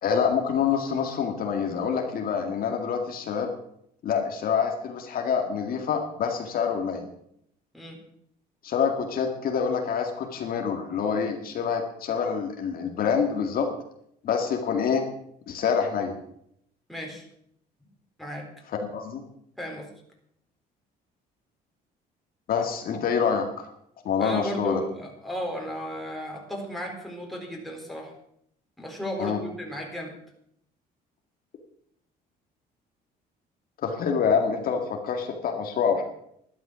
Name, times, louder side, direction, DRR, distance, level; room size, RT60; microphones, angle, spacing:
voice 1, 0.0-3.5 4.0-7.1 8.6-13.7 14.2-15.1 15.5-16.2 18.9-19.2 22.5-23.7 24.0-24.8 29.2-29.4 33.8-36.0, left 6 dB, 60° left, 3 dB, 2.1 m, -26 dB
voice 2, 16.9-17.2 18.2-18.5 19.6-19.9 24.2-28.1 28.8-30.1, equal, ahead, 0 dB, 4.1 m, -34 dB
12.0 x 12.0 x 6.3 m, 0.73 s
cardioid pair, 110°, 17 cm